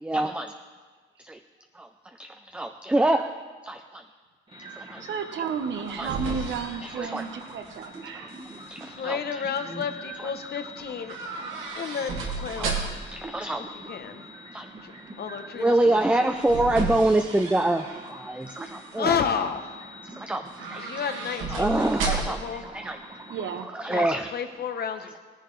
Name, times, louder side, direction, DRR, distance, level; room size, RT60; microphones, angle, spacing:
voice 1, 0.0-0.5 2.2-3.4 3.6-4.0 4.8-5.0 6.0-6.1 7.0-7.2 8.1-8.3 8.7-9.2 9.7-9.8 12.6-12.7 13.1-13.6 14.5-14.7 15.6-19.2 20.2-20.4 20.7-20.9 21.5-22.4 22.7-23.0 23.7-24.3, right 1 dB, 5° right, 6 dB, 0.5 m, -25 dB
sound 1, 4.5-23.6, right 1 dB, 25° right, 1.5 m, -44 dB
voice 2, 5.0-8.6 15.8-16.3 23.3-23.7, right 6 dB, 70° right, 7 dB, 1.2 m, -33 dB
sound 2, 5.6-8.0 8.3-8.9 11.1-13.2 16.0-18.1 18.5-19.0 20.5-22.5 22.8-22.9, right 4 dB, 90° right, 2.2 m, -34 dB
voice 3, 8.8-11.2 11.7-13.0 13.6-14.2 14.8-14.9 15.2-16.4 19.0-19.8 20.7-22.7 23.9-25.1, left 7 dB, 55° left, 8 dB, 1.0 m, -32 dB
17.5 x 10.5 x 3.3 m, 1.4 s
cardioid pair, 90°, 20 cm